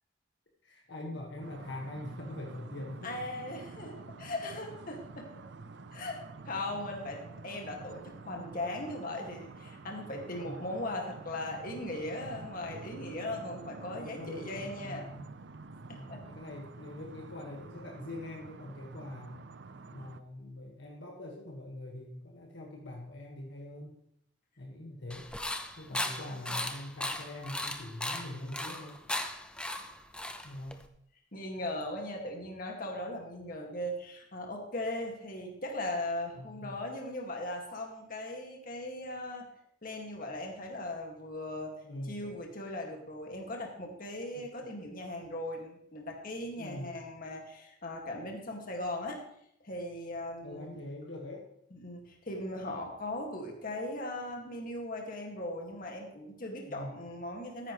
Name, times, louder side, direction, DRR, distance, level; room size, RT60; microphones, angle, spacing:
voice 1, 0.6-3.1 10.4-10.7 14.2-15.3 15.9-19.4 19.9-23.9 24.6-25.3 25.8-29.0 30.4-30.8 36.3-36.8 41.8-42.2 44.3-44.4 46.6-46.9 50.4-51.5 56.6-56.9, left 1 dB, 65° left, 0 dB, 1.7 m, -43 dB
sound 1, 1.4-20.2, right 3 dB, 60° right, 0.6 m, -48 dB
voice 2, 3.0-5.3 5.9-6.2 6.5-15.1 15.9-16.2 25.9-26.6 31.3-39.5 39.8-41.7 42.1-49.2 49.6-50.8 51.7-57.7, left 1 dB, 45° left, 1 dB, 2.1 m, -39 dB
sound 2, 25.1-30.9, left 1 dB, 5° left, 0.7 m, -37 dB
14.0 x 10.5 x 3.2 m, 0.72 s
head